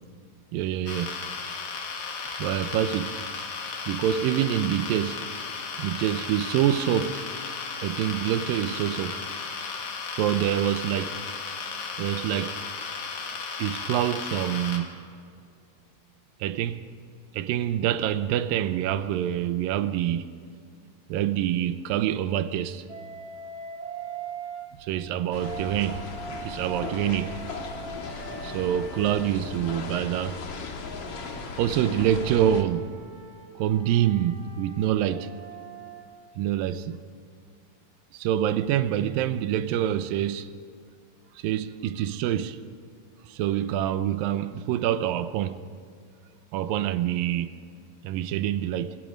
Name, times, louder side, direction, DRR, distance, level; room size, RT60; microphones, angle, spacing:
voice 1, 0.5-1.1 2.4-3.4 3.9-5.2 5.8-7.2 7.8-9.2 10.1-11.2 12.0-12.6 13.6-14.9 16.4-16.9 17.3-20.3 21.1-22.8 24.8-26.0 26.4-27.3 28.4-30.4 31.6-32.9 33.6-35.3 36.4-37.0 38.1-40.5 41.4-42.6 43.3-45.6 46.5-47.5 48.0-48.9, right 11 dB, 75° right, 2.3 m, -26 dB
sound 1, 0.9-14.8, left 5 dB, 65° left, 3.8 m, -35 dB
Wind instrument woodwind instrument, 22.9-24.7 25.3-30.1 30.8-36.0, right 5 dB, 30° right, 3.6 m, -42 dB
sound 2, 25.3-32.6, left 4 dB, 45° left, 2.3 m, -37 dB
28.0 x 21.5 x 5.2 m
omnidirectional pair, 4.5 m